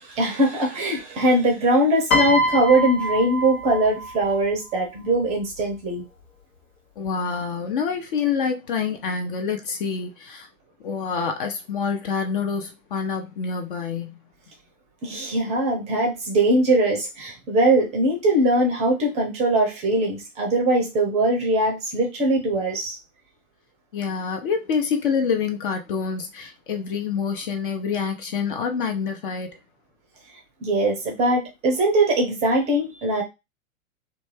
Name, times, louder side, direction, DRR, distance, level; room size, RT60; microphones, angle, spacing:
voice 1, 0.0-6.0 15.0-23.0 30.6-33.2, right 1 dB, 15° right, 0.5 m, -21 dB
Piano, 2.1-4.5 5.5-5.8, equal, 65° left, 1.0 m, -25 dB
voice 2, 7.0-10.5 10.8-14.1 23.9-29.6, left 6 dB, 40° left, 0.5 m, -27 dB
2.4 x 2.2 x 3.2 m
figure-of-eight pair, 100°, 42 cm